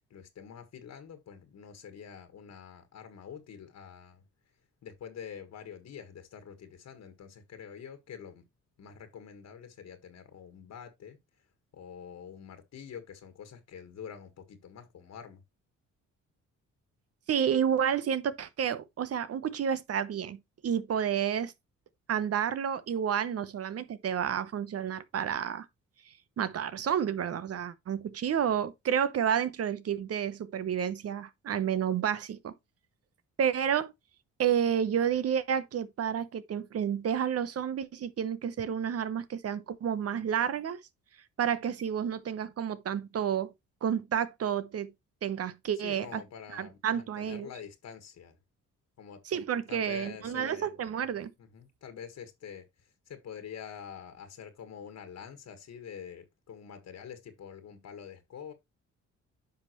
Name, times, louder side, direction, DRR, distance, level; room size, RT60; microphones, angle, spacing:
voice 1, 0.0-4.2 4.8-8.4 8.8-11.5 11.7-15.4 45.7-48.4 49.0-49.2 49.7-50.8 51.4-58.5, left 7 dB, 60° left, 1.7 m, -46 dB
voice 2, 17.3-20.4 20.6-21.5 22.1-25.7 26.4-32.5 33.4-33.9 34.4-40.8 41.4-43.5 43.8-44.9 45.2-46.2 46.5-47.5 49.3-51.3, right 8 dB, 50° right, 0.9 m, -30 dB
9.7 x 5.6 x 3.1 m
cardioid pair, 90°, 30 cm